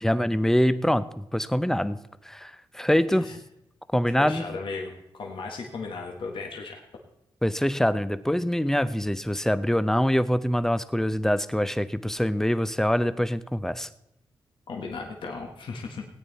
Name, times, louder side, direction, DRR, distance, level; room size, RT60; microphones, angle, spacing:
voice 1, 0.0-2.0 2.2-3.3 3.9-4.4 7.4-13.9, equal, 5° left, 14 dB, 0.6 m, -24 dB
voice 2, 4.2-6.8 14.7-16.0, left 4 dB, 75° left, 1 dB, 1.6 m, -36 dB
17.5 x 9.1 x 4.2 m, 0.82 s
cardioid pair, 75°, 9 cm